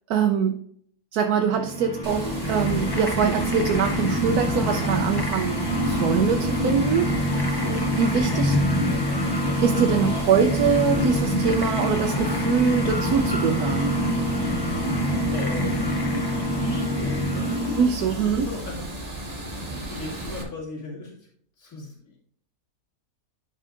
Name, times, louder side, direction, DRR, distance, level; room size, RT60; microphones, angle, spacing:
voice 1, 0.1-0.6 1.1-7.4 7.9-8.6 9.6-14.0 17.8-18.5, right 6 dB, 80° right, 4 dB, 1.1 m, -23 dB
sound 1, 1.4-18.1, equal, 30° left, 0.4 m, -25 dB
Water, 2.0-20.4, right 1 dB, 25° right, 1.4 m, -35 dB
voice 2, 15.3-15.8 16.5-21.2 21.6-22.2, left 3 dB, 65° left, -7 dB, 2.9 m, -37 dB
11.0 x 5.5 x 2.5 m, 0.62 s
omnidirectional pair, 1.6 m